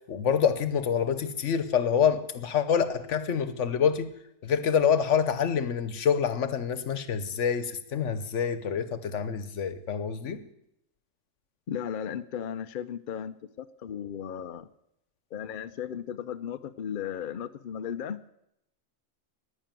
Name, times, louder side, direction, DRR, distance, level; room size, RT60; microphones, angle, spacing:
voice 1, 0.1-4.1 4.4-10.4, left 7 dB, 80° left, 1.2 m, -26 dB
voice 2, 11.7-14.7 15.3-18.2, left 8 dB, 50° left, 0.7 m, -35 dB
11.0 x 10.0 x 8.9 m
omnidirectional pair, 1.2 m